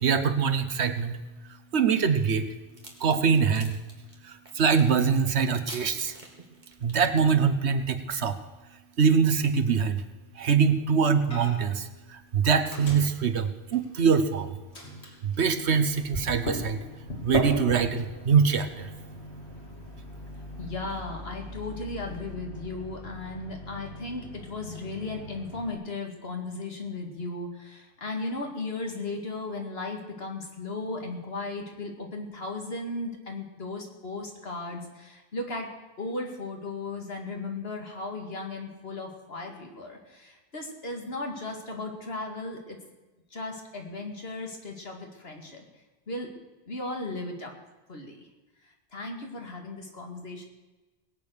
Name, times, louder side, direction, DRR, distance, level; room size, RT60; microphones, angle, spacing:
voice 1, 0.0-1.2 1.7-2.5 3.0-3.8 4.2-6.1 6.8-8.4 9.0-10.0 10.4-14.6 15.2-16.8 17.2-18.9, right 6 dB, 90° right, 10 dB, 1.3 m, -24 dB
sound 1, 2.2-7.1, right 1 dB, 45° right, 2.7 m, -46 dB
Microwave oven, 11.3-11.8 12.1-14.3 14.7-25.7, left 1 dB, 90° left, 3.4 m, -38 dB
voice 2, 20.6-42.8 43.3-45.6 46.1-46.3 46.7-47.5 47.9-48.3 48.9-50.5, left 2 dB, 70° left, 2 dB, 2.5 m, -36 dB
20.0 x 8.7 x 6.6 m, 1.1 s
omnidirectional pair, 1.1 m